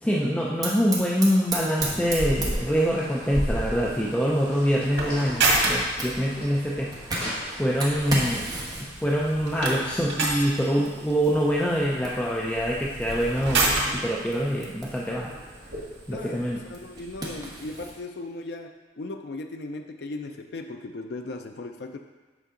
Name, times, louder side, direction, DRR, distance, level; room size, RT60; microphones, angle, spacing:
voice 1, 0.0-6.9 7.6-8.4 8.8-15.3 16.1-16.6, equal, 5° left, -5 dB, 0.6 m, -25 dB
Fire, 0.6-18.0, right 1 dB, 20° right, 1.2 m, -35 dB
sound 1, 2.0-17.5, right 2 dB, 85° right, 1.9 m, -32 dB
sound 2, 4.3-6.8 7.1-7.8, left 1 dB, 35° left, 2.5 m, -40 dB
voice 2, 16.1-22.0, left 2 dB, 60° left, 5 dB, 0.4 m, -37 dB
8.2 x 5.4 x 3.8 m, 1.3 s
head